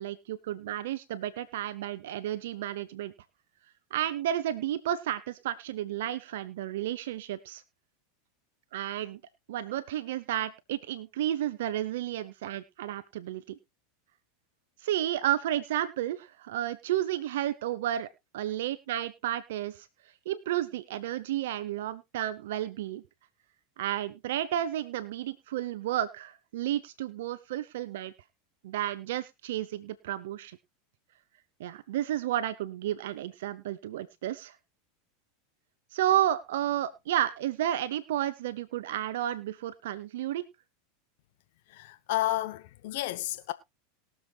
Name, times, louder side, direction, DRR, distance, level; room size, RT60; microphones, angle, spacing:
voice 1, 0.0-3.1 3.9-7.6 8.7-9.2 9.5-13.6 14.8-18.1 18.3-19.8 20.3-23.0 23.8-28.1 28.6-30.6 31.6-34.6 35.9-40.4, right 12 dB, 75° right, 0.9 m, -32 dB
voice 2, 41.7-43.5, left 16 dB, 70° left, 0.8 m, -31 dB
21.5 x 7.2 x 2.4 m
hypercardioid pair, 110°, 0 cm